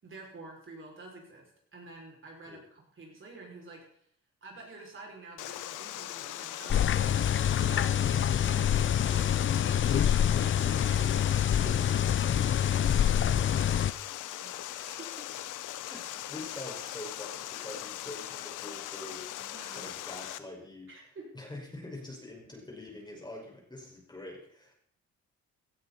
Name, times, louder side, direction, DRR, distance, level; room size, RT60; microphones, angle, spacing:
voice 1, 0.0-4.0 4.4-7.1 7.5-12.7 13.2-13.7 14.4-15.3 19.3-19.9 20.9-21.4, right 3 dB, 40° right, -1 dB, 6.1 m, -49 dB
Water, 5.4-20.4, left 14 dB, 90° left, 0.9 m, -40 dB
sound 1, 6.7-13.9, left 9 dB, 40° left, 0.7 m, -26 dB
voice 2, 15.8-19.3 19.8-20.9 21.3-24.7, left 1 dB, 15° left, 0 dB, 5.6 m, -45 dB
17.5 x 13.0 x 4.3 m, 0.64 s
cardioid pair, 90°, 30 cm